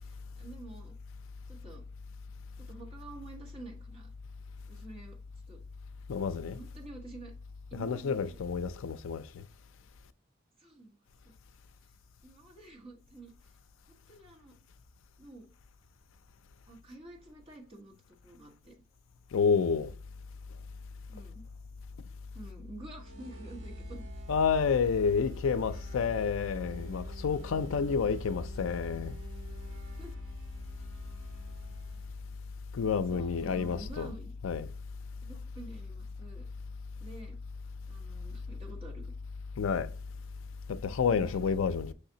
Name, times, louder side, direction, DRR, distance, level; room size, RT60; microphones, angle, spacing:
voice 1, 0.0-0.9 1.5-1.8 2.6-4.1 4.7-5.2 5.5-5.6 6.5-7.3 7.7-8.4 10.6-11.0 11.2-11.3 11.8-11.9 12.2-13.5 13.9-14.6 15.2-15.5 16.7-18.8 21.1-21.4 22.3-24.0 30.0-30.1 33.1-34.3 35.2-36.5 37.0-37.4 37.9-39.1 41.2-41.6, right 2 dB, 25° right, 1.2 m, -49 dB
voice 2, 6.1-6.6 7.7-9.4 19.3-19.9 24.3-29.2 32.7-34.1 34.4-34.7 39.6-39.9 40.7-41.9, left 5 dB, 65° left, 0.4 m, -29 dB
sound 1, 22.9-32.4, right 2 dB, 60° right, 1.3 m, -47 dB
5.6 x 3.3 x 2.8 m
head